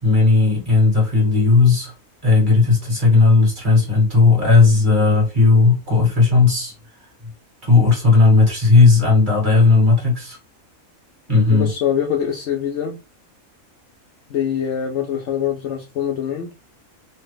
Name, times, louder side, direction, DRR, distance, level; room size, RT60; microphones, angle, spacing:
voice 1, 0.0-1.9 2.2-6.7 7.6-10.4 11.3-11.7, left 3 dB, 35° right, 1.7 m, -15 dB
voice 2, 11.5-13.0 14.3-16.5, left 9 dB, 65° left, 0.8 m, -24 dB
3.2 x 2.1 x 3.3 m
omnidirectional pair, 1.5 m